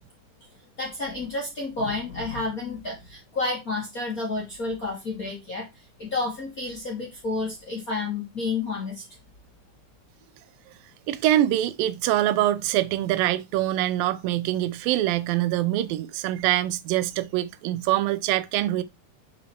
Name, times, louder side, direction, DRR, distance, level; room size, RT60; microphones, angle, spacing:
voice 1, 0.8-9.0, left 3 dB, 40° left, 1.4 m, -30 dB
voice 2, 11.1-18.8, right 14 dB, 85° right, 2.3 m, -24 dB
6.3 x 4.2 x 4.3 m
omnidirectional pair, 4.1 m